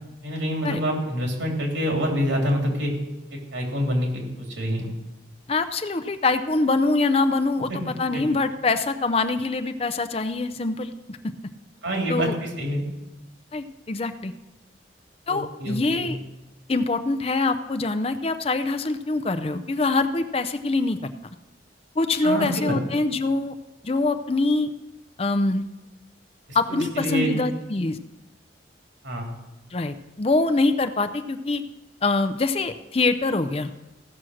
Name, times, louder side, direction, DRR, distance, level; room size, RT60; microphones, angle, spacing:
voice 1, 0.2-2.9 3.3-4.9 8.1-8.2 11.8-12.8 15.3-16.1 22.2-22.7 26.5-27.4 29.0-29.3, equal, 85° right, 1 dB, 3.0 m, -26 dB
voice 2, 5.5-11.2 12.1-12.3 13.5-14.3 15.3-16.2 16.7-21.0 22.0-23.6 23.8-24.7 25.2-25.7 26.5-28.0 29.7-31.6 32.0-33.7, left 3 dB, 30° left, 9 dB, 0.5 m, -24 dB
15.5 x 6.1 x 6.3 m, 1.0 s
head